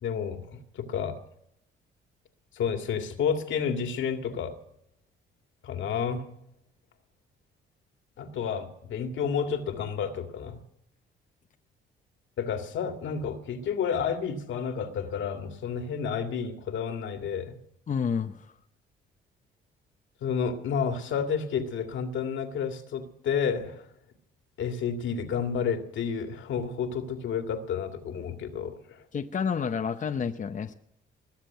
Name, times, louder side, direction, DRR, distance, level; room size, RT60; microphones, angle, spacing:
voice 1, 0.0-1.2 2.5-4.5 5.6-6.3 8.2-10.6 12.4-17.6 20.2-23.9 24.6-29.0, left 6 dB, 75° left, 6 dB, 2.2 m, -30 dB
voice 2, 17.9-18.5 29.1-30.7, left 6 dB, 40° left, 6 dB, 0.8 m, -29 dB
21.0 x 7.5 x 9.2 m, 0.75 s
cardioid pair, 90°, 20 cm